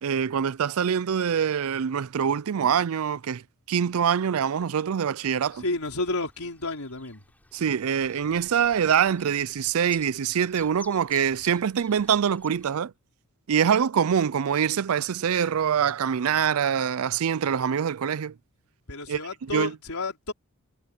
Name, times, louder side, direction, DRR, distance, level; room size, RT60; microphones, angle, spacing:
voice 1, 0.0-5.6 7.5-12.9 13.5-18.3 19.1-19.7, right 7 dB, 75° right, 0.4 m, -24 dB
Chirp tweet, 5.4-12.8, left 2 dB, 5° left, 7.2 m, -52 dB
voice 2, 5.5-7.2 18.9-20.3, left 2 dB, 80° left, 4.3 m, -31 dB
head